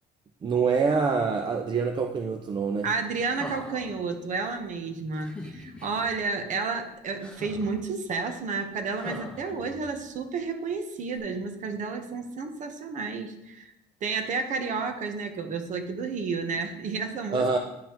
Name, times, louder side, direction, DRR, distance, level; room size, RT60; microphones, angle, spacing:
voice 1, 0.4-2.9 17.3-17.6, right 5 dB, 25° right, 4 dB, 0.5 m, -25 dB
voice 2, 2.8-13.7 14.0-17.6, right 4 dB, 45° right, 6 dB, 1.0 m, -31 dB
sound 1, 3.2-4.0 5.2-6.1 7.2-7.8 8.9-10.1 11.1-11.2, left 1 dB, 5° left, 1.0 m, -42 dB
10.5 x 5.3 x 2.9 m, 0.88 s
cardioid pair, 155°, 18 cm